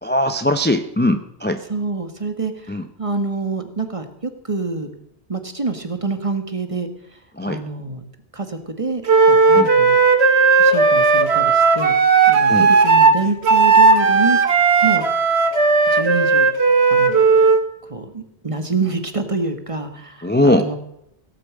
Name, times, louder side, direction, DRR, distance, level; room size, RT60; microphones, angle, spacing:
voice 1, 0.0-1.6 2.7-2.9 7.3-7.6 9.5-9.7 12.5-12.7 14.9-15.1 20.2-20.8, left 1 dB, 10° left, 8 dB, 0.6 m, -20 dB
voice 2, 1.7-4.9 5.3-6.9 7.5-8.0 8.3-10.0 10.6-11.9 12.3-14.4 14.8-15.0 15.9-16.5 16.9-17.2 17.9-20.8, right 3 dB, 30° right, 7 dB, 1.5 m, -26 dB
Wind instrument woodwind instrument, 9.1-17.6, right 4 dB, 70° right, 1.5 m, -14 dB
16.0 x 8.7 x 7.6 m, 0.79 s
omnidirectional pair, 1.1 m